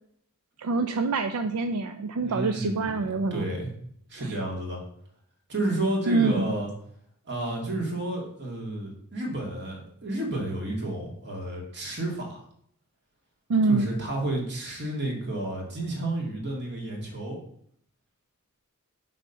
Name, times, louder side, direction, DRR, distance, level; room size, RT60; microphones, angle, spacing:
voice 1, 0.6-3.5 6.1-6.5 13.5-13.9, right 3 dB, 85° right, 8 dB, 0.4 m, -25 dB
voice 2, 2.2-3.7 4.1-4.8 5.5-6.7 7.3-12.4 13.7-17.4, right 1 dB, 50° right, 0 dB, 2.1 m, -31 dB
6.2 x 4.2 x 5.4 m, 0.68 s
head